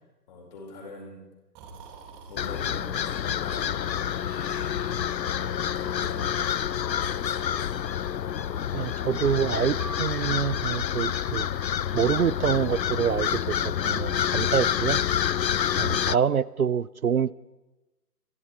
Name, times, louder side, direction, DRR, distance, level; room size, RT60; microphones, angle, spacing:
voice 1, 0.3-1.2 2.3-5.1 5.6-6.5 6.9-8.0, left 2 dB, 25° left, 1 dB, 4.6 m, -44 dB
Breathing, 1.5-2.9 4.2-5.4, right 5 dB, 15° right, 3.1 m, -49 dB
sound 1, 2.4-16.2, left 9 dB, 90° left, 0.6 m, -28 dB
voice 2, 8.7-11.5 11.9-15.0 15.8-17.3, right 7 dB, 60° right, 18 dB, 0.6 m, -26 dB
sound 2, 9.8-13.6 14.5-15.2, left 1 dB, 90° right, 2.1 m, -48 dB
26.0 x 11.5 x 4.6 m, 1.0 s
figure-of-eight pair, 155°, 49 cm